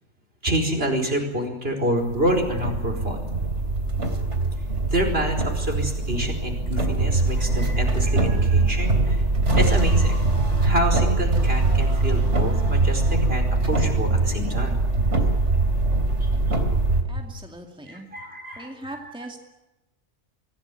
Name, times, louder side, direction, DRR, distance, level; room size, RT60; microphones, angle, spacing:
voice 1, 0.4-3.2 4.9-9.2 9.6-10.2 10.6-15.0 16.2-16.3 17.9-19.4, right 1 dB, 50° right, 3 dB, 5.2 m, -27 dB
sound 1, 2.1-17.0, right 2 dB, 70° right, 3.7 m, -22 dB
voice 2, 17.1-18.1 18.6-19.4, right 1 dB, 5° right, 3 dB, 2.3 m, -39 dB
25.0 x 17.0 x 9.9 m, 1.0 s
omnidirectional pair, 1.3 m